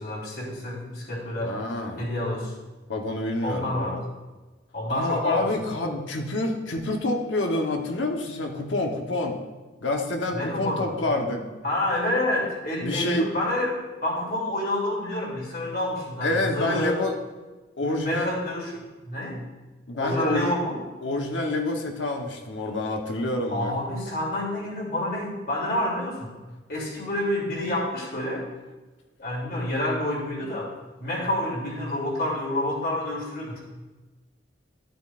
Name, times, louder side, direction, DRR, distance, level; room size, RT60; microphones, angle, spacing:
voice 1, 0.0-1.5 2.0-2.5 3.4-4.0 4.7-5.9 10.3-10.9 11.6-17.0 17.8-19.4 19.9-20.8 23.5-26.4 26.7-28.4 29.2-30.7 31.0-33.6, left 1 dB, 55° left, -4 dB, 3.1 m, -28 dB
voice 2, 1.4-2.1 2.9-4.0 4.9-9.3 9.8-11.4 12.8-13.3 16.2-17.1 17.8-18.3 19.9-20.5 21.0-23.7, left 2 dB, 85° left, 2 dB, 1.1 m, -27 dB
13.0 x 7.8 x 2.5 m, 1.2 s
head